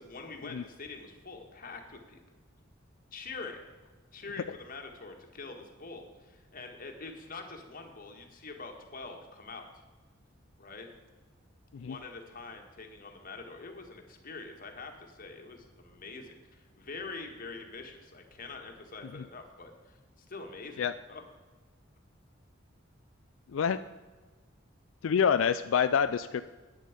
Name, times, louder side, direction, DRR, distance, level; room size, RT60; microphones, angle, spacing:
voice 1, 0.0-2.2 3.1-3.6 4.1-9.7 10.6-10.9 11.7-21.2, left 3 dB, 45° left, 3 dB, 1.8 m, -45 dB
voice 2, 25.0-26.4, left 7 dB, 90° left, 11 dB, 0.4 m, -26 dB
12.0 x 9.3 x 5.2 m, 1.3 s
head